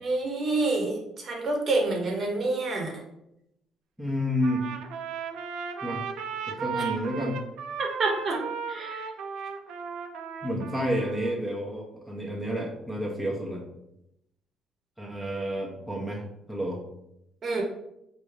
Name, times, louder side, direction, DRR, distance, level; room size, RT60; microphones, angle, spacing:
voice 1, 0.0-2.9 7.8-8.4 8.7-9.1 17.4-17.6, right 3 dB, 40° right, 1 dB, 0.9 m, -27 dB
voice 2, 4.0-4.6 5.8-6.1 6.5-7.4 9.4-9.5 10.4-13.7 15.0-16.2 16.5-16.8, equal, ahead, -4 dB, 0.7 m, -30 dB
Trumpet, 4.4-11.3, right 6 dB, 80° right, 0.4 m, -36 dB
4.7 x 2.6 x 3.2 m, 0.82 s
cardioid pair, 135°, 0 cm